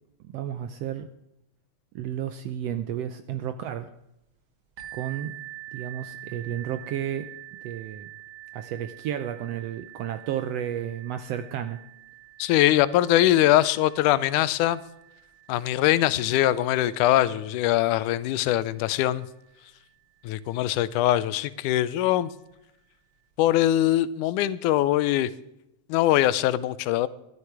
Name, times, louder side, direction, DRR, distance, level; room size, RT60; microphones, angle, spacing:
voice 1, 0.2-1.1 1.9-3.9 4.9-5.3 5.7-7.3 7.6-8.1 8.5-11.8, right 10 dB, 80° right, 1.5 m, -32 dB
sound 1, 4.8-20.3 21.1-21.2 21.7-21.8, right 15 dB, 50° right, 1.9 m, -47 dB
voice 2, 12.4-14.8 15.5-19.3 20.2-22.3 23.4-25.3 25.9-27.1, left 14 dB, 90° left, 2.1 m, -22 dB
13.0 x 12.5 x 4.7 m
omnidirectional pair, 3.5 m